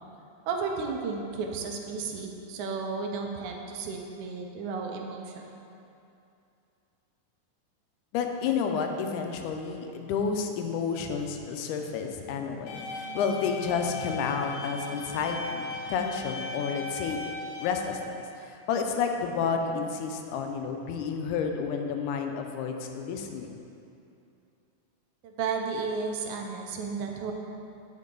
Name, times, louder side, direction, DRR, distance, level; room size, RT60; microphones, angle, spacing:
voice 1, 0.5-5.5 25.2-27.3, right 4 dB, 80° right, 2 dB, 2.0 m, -33 dB
voice 2, 8.1-17.2 17.6-23.5, left 6 dB, 85° left, 4 dB, 2.1 m, -30 dB
sound 1, 12.7-17.7, left 3 dB, 65° left, 2.0 m, -38 dB
9.4 x 4.6 x 3.7 m, 2.7 s
omnidirectional pair, 3.6 m